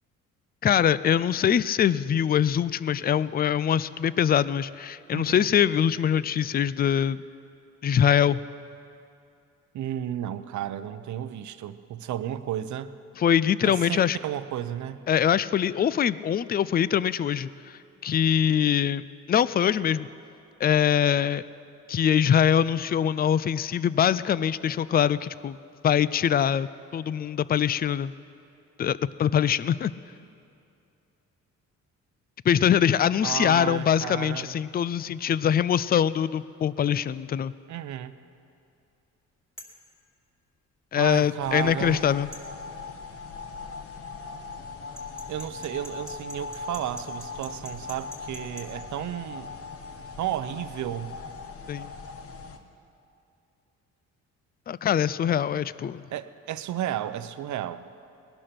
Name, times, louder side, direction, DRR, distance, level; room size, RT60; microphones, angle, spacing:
voice 1, 0.6-7.2 7.8-8.4 13.2-14.2 15.1-20.1 20.6-21.4 21.9-25.6 25.8-28.1 28.8-29.9 32.5-37.5 40.9-42.3 51.7-51.9 54.7-56.0, left 9 dB, 30° left, 18 dB, 0.4 m, -23 dB
voice 2, 5.1-5.5 9.7-12.9 13.7-15.0 33.2-34.6 37.7-38.1 41.0-42.1 45.3-49.5 50.2-51.2 56.1-57.8, right 11 dB, 70° right, 12 dB, 0.8 m, -33 dB
sound 1, 39.6-39.8 42.3-42.5 45.0-48.7, left 1 dB, 10° left, 2.5 m, -44 dB
sound 2, 41.4-52.6, left 4 dB, 50° left, 1.3 m, -40 dB
19.5 x 11.5 x 6.0 m, 2.6 s
cardioid pair, 90°, 30 cm